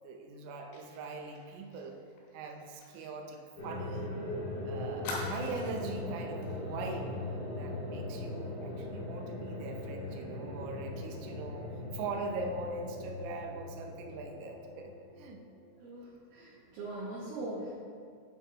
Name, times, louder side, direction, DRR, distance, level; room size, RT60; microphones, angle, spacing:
voice 1, 0.0-2.0 2.3-4.2 4.6-7.2 7.6-11.7 11.9-15.4, right 3 dB, 85° right, 3 dB, 3.2 m, -41 dB
Fire, 0.7-4.2 4.4-4.5 5.0-6.0 6.4-6.6 6.9-7.2, left 2 dB, 75° left, 3.7 m, -45 dB
sound 1, 3.6-15.6, left 2 dB, 45° left, 1.2 m, -40 dB
voice 2, 15.8-17.7, right 2 dB, 70° right, -6 dB, 2.7 m, -41 dB
9.0 x 5.8 x 4.1 m, 2.2 s
omnidirectional pair, 5.4 m